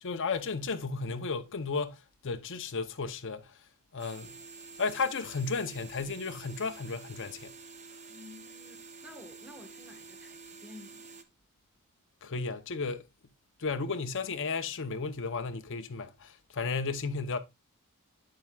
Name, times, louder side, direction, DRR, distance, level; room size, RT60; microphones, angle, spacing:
voice 1, 0.0-3.5 3.9-4.4 4.8-7.5 12.2-13.1 13.6-17.4, left 4 dB, 55° left, 0.7 m, -34 dB
sound 1, 4.0-11.2, right 4 dB, 30° right, 0.8 m, -49 dB
voice 2, 8.1-11.2, left 1 dB, 5° right, 1.3 m, -52 dB
8.5 x 7.7 x 2.3 m
head